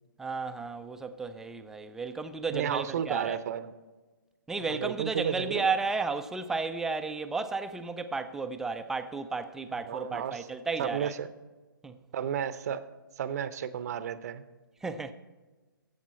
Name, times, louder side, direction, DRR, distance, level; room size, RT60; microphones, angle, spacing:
voice 1, 0.2-3.4 4.5-11.1 11.8-12.0 14.8-15.1, right 4 dB, 5° right, 0.3 m, -33 dB
voice 2, 2.5-3.7 4.7-5.7 9.8-10.5 10.8-11.3 12.1-12.8 13.2-14.4, right 9 dB, 45° right, 0.6 m, -32 dB
14.5 x 7.3 x 4.2 m
figure-of-eight pair, 135°, 12 cm